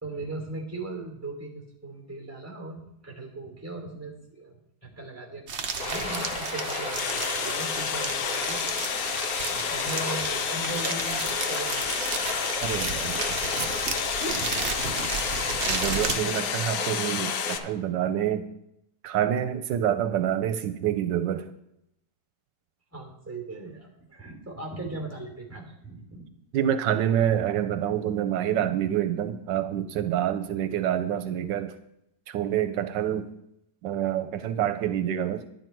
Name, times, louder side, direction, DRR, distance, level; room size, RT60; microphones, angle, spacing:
voice 1, 0.0-5.4 5.7-8.8 9.5-12.2 14.2-15.1 22.9-26.3, right 2 dB, 10° right, 1 dB, 2.9 m, -39 dB
sound 1, 5.5-16.2, right 5 dB, 45° right, 1.0 m, -33 dB
Stream, 5.8-17.6, left 3 dB, 55° left, 2.0 m, -33 dB
sound 2, 7.0-17.6, left 10 dB, 75° left, 1.2 m, -32 dB
voice 2, 12.6-13.4 15.6-18.5 19.0-21.5 26.5-31.7 32.3-33.3 33.8-35.5, right 10 dB, 85° right, 10 dB, 1.3 m, -27 dB
11.5 x 10.5 x 4.5 m, 0.81 s
omnidirectional pair, 1.9 m